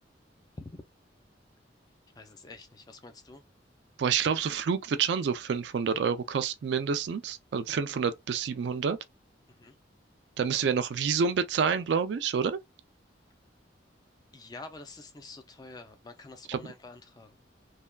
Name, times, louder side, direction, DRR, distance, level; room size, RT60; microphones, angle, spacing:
voice 1, 2.2-3.4 9.5-9.8 14.3-17.4, left 3 dB, 20° left, 0.4 m, -47 dB
voice 2, 4.0-9.0 10.4-12.6 16.5-16.6, right 6 dB, 65° right, 0.3 m, -28 dB
3.3 x 2.2 x 2.2 m
head